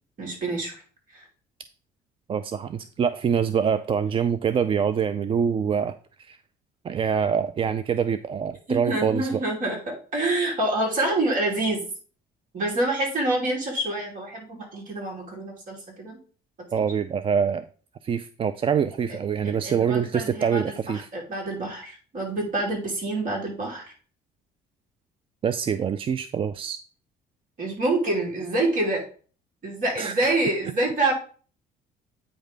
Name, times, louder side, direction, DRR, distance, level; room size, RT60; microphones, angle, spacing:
voice 1, 0.2-0.7 1.1-1.3 8.7-11.8 12.5-16.2 16.7-16.8 19.4-20.7 21.1-23.9 27.6-29.0 29.6-31.1, right 2 dB, 55° right, -1 dB, 2.8 m, -27 dB
voice 2, 2.3-6.4 6.8-9.4 16.7-17.7 18.0-21.1 25.4-26.8 30.0-30.3, right 7 dB, 30° right, 12 dB, 0.3 m, -25 dB
8.6 x 3.2 x 5.1 m, 0.41 s
cardioid pair, 110°, 17 cm